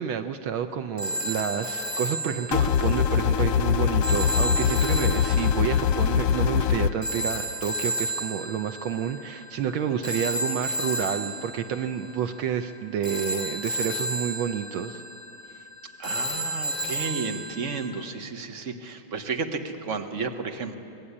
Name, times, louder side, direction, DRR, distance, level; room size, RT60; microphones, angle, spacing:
voice 1, 0.0-15.0, right 8 dB, 75° right, 8 dB, 1.5 m, -29 dB
sound 1, 1.0-17.9, right 1 dB, 20° left, 4.5 m, -33 dB
sound 2, 2.5-6.9, left 8 dB, 90° left, 1.7 m, -23 dB
voice 2, 16.0-20.8, right 4 dB, 40° right, 5 dB, 1.7 m, -32 dB
25.0 x 20.0 x 9.9 m, 2.8 s
omnidirectional pair, 2.3 m